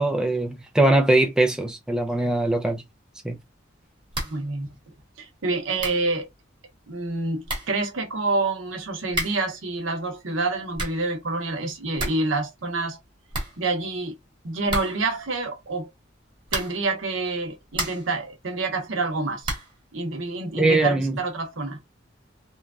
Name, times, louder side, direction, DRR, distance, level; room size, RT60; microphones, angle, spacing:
voice 1, 0.0-2.8 3.2-3.4 20.6-21.2, right 2 dB, 5° right, 0.4 m, -21 dB
sound 1, 4.1-4.5 4.8-4.9 5.5-5.6 5.8-6.1 7.1-7.2 7.4-7.8 9.1-9.5 10.5-11.1 11.5-11.6 11.8-12.3 12.6-12.7 13.0-13.1 13.3-14.1 14.7-15.2 16.4-16.9 17.4-18.2 19.4-19.8, right 1 dB, 25° right, 1.0 m, -32 dB
voice 2, 4.2-4.7 5.2-6.3 6.9-13.0 13.6-14.1 14.4-15.9 16.5-19.5 19.9-21.8, right 3 dB, 70° right, 0.7 m, -27 dB
3.0 x 2.3 x 2.3 m
head